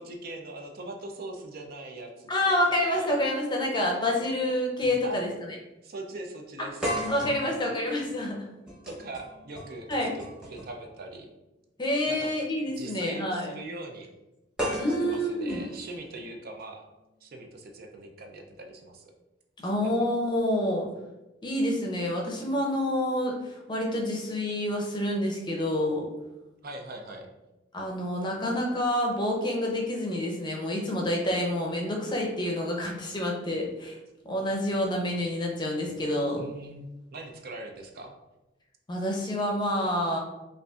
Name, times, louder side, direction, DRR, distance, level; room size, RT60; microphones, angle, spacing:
voice 1, 0.0-3.1 5.0-5.3 5.8-6.9 8.8-11.3 12.1-12.3 12.8-14.1 15.0-16.8 17.2-19.1 19.6-19.7 26.6-27.3 36.4-38.1, right 2 dB, 50° right, 2 dB, 0.5 m, -41 dB
voice 2, 2.3-5.3 6.6-6.7 7.1-8.5 9.9-10.1 11.8-13.5 14.8-15.6 19.6-20.9 21.4-26.0 27.7-34.0 34.2-36.4 38.9-40.2, left 1 dB, 25° left, 0 dB, 0.6 m, -28 dB
sound 1, 4.8-5.0 5.4-5.5 6.8-10.8 12.0-12.2 14.6-16.6, equal, 5° right, 0.9 m, -36 dB
5.1 x 2.5 x 2.4 m, 0.99 s
head